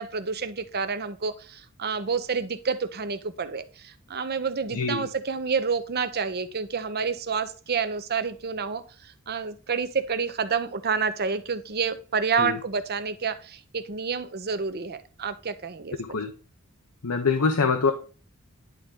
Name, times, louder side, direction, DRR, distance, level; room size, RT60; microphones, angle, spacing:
voice 1, 0.0-16.2, right 5 dB, 45° right, 11 dB, 0.8 m, -29 dB
voice 2, 4.7-5.1 12.4-12.6 16.0-16.3 17.0-17.9, left 4 dB, 90° left, 6 dB, 0.9 m, -24 dB
11.0 x 3.7 x 3.7 m, 0.38 s
head